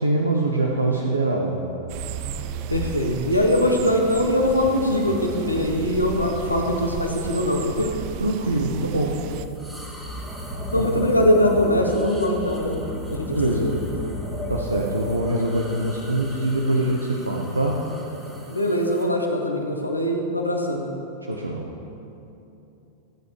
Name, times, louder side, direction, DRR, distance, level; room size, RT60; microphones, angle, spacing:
voice 1, 0.0-1.7 8.2-9.2 10.7-11.1 13.3-13.9 14.5-17.9 21.2-21.7, right 1 dB, 80° right, 0 dB, 0.7 m, -24 dB
sound 1, 1.9-9.5, right 7 dB, 45° right, 0.4 m, -34 dB
voice 2, 2.7-7.9 10.7-12.8 13.1-14.0 18.5-20.8, left 1 dB, 85° left, 1 dB, 1.1 m, -22 dB
sound 2, 9.3-19.1, equal, 10° right, 1.6 m, -34 dB
15.0 x 8.2 x 3.2 m, 2.9 s
figure-of-eight pair, 90°, 0 cm